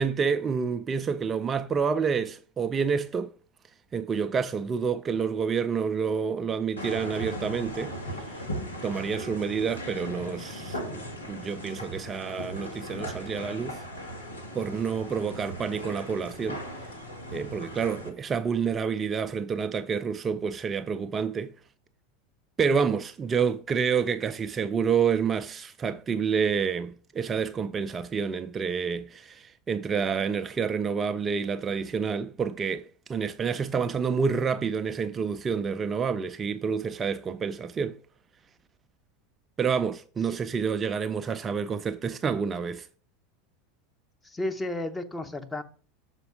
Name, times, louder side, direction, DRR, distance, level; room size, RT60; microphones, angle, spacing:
voice 1, 0.0-3.3 3.9-8.4 8.8-13.8 14.5-16.6 17.3-21.5 22.6-38.0 39.6-42.9, right 6 dB, 25° right, 0.3 m, -28 dB
sound 1, 6.8-18.1, equal, 90° left, 1.3 m, -38 dB
voice 2, 44.2-45.6, left 1 dB, 10° left, 0.9 m, -33 dB
6.8 x 4.4 x 4.9 m
hypercardioid pair, 85°, 0 cm